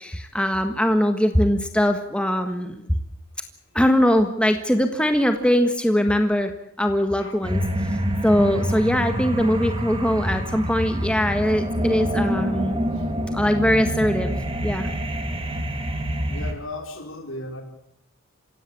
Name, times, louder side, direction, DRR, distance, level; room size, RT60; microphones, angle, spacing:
voice 1, 0.0-2.8 3.7-6.5 6.8-7.6 8.2-12.9 13.3-14.9, equal, 5° left, 6 dB, 1.5 m, -21 dB
sound 1, 7.4-16.5, equal, 25° right, 3.0 m, -26 dB
voice 2, 16.3-17.6, left 2 dB, 65° left, 5 dB, 4.3 m, -35 dB
26.0 x 17.0 x 8.5 m, 0.78 s
head